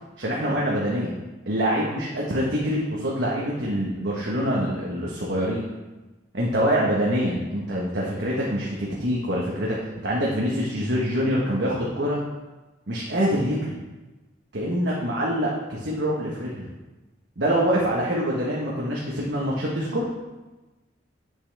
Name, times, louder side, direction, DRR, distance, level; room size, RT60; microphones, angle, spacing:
voice 1, 0.2-1.1 1.5-5.6 6.3-9.8 10.0-12.2 12.9-13.7 14.5-16.7 17.4-20.1, equal, 65° right, -4 dB, 1.2 m, -25 dB
8.6 x 6.8 x 3.4 m, 1.1 s
head